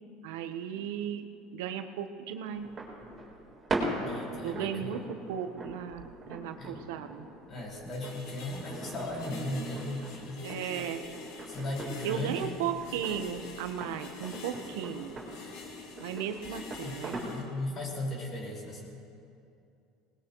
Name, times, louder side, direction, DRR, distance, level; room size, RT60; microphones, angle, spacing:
voice 1, 0.2-1.3 1.5-2.7 4.4-6.0 6.3-7.2 10.4-11.1 12.0-15.1 16.0-17.2, right 8 dB, 85° right, 8 dB, 0.9 m, -35 dB
sound 1, 2.5-17.6, right 2 dB, 25° right, 3.8 m, -41 dB
voice 2, 4.0-5.0 6.6-6.8 7.5-10.6 11.5-12.7 16.8-18.9, left 1 dB, 40° left, -2 dB, 4.9 m, -37 dB
sound 2, 7.9-17.4, left 3 dB, 70° left, 2.3 m, -46 dB
20.0 x 20.0 x 3.1 m, 2.6 s
supercardioid pair, 120°, 0 cm